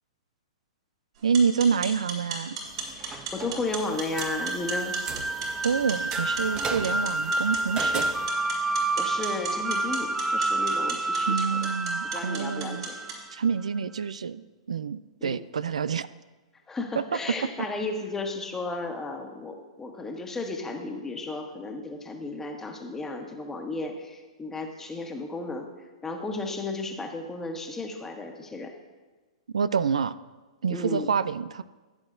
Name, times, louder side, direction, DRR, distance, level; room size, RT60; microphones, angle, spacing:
sound 1, 1.2-13.2, right 5 dB, 65° right, 3.7 m, -38 dB
voice 1, 1.2-2.6 5.6-8.1 11.3-12.9 13.3-16.1 17.0-17.1 29.5-30.1 30.6-31.6, right 6 dB, 85° right, 16 dB, 0.3 m, -27 dB
sound 2, 2.7-8.3, right 5 dB, 25° right, 0.9 m, -39 dB
voice 2, 2.9-4.9 8.7-11.7 12.1-13.0 15.2-15.4 16.7-25.7 26.0-28.7 30.7-31.1, left 3 dB, 10° left, 3 dB, 1.4 m, -34 dB
sound 3, 4.1-13.3, right 2 dB, 5° right, 0.4 m, -29 dB
15.5 x 8.7 x 2.6 m, 1.3 s
hypercardioid pair, 120°, 3 cm